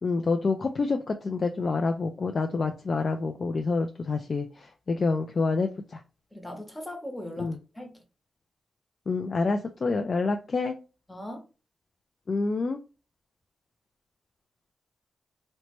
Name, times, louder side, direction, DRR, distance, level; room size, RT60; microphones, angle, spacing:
voice 1, 0.0-6.0 7.4-7.6 9.1-10.8 12.3-12.8, left 3 dB, 55° left, 0.3 m, -27 dB
voice 2, 6.3-8.0 11.1-11.4, left 1 dB, 15° left, 0.9 m, -39 dB
2.8 x 2.1 x 2.9 m
cardioid pair, 50°, 0 cm